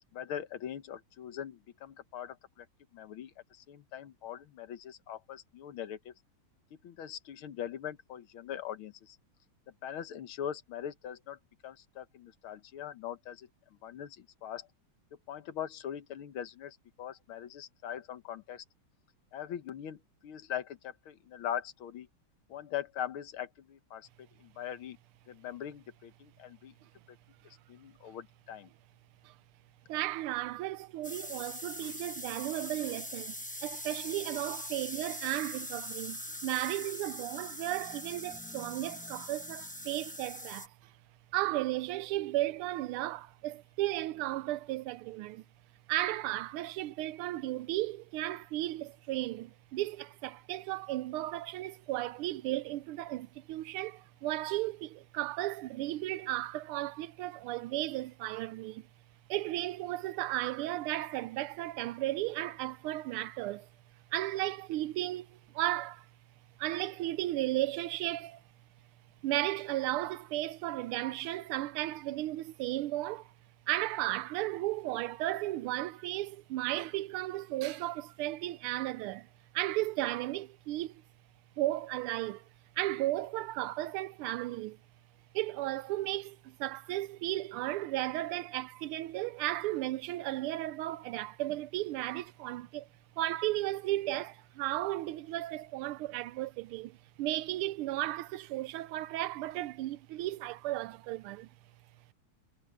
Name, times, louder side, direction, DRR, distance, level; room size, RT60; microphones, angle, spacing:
voice 1, 0.1-2.7 2.9-6.1 6.8-9.2 9.8-13.5 13.8-14.7 15.3-18.6 19.3-22.1 22.5-25.0 25.3-26.7 27.7-28.7, left 9 dB, 75° left, 1.9 m, -41 dB
voice 2, 29.9-33.3 33.6-40.9 41.3-45.4 45.9-58.9 59.3-63.7 64.1-66.1 66.6-68.4 69.2-73.3 73.7-79.3 79.5-81.0 81.6-82.5 82.8-84.8 85.3-92.9 93.2-101.5, right 16 dB, 80° right, 1.5 m, -35 dB
sound 1, 31.0-40.7, left 1 dB, 10° left, 0.5 m, -42 dB
omnidirectional pair, 2.4 m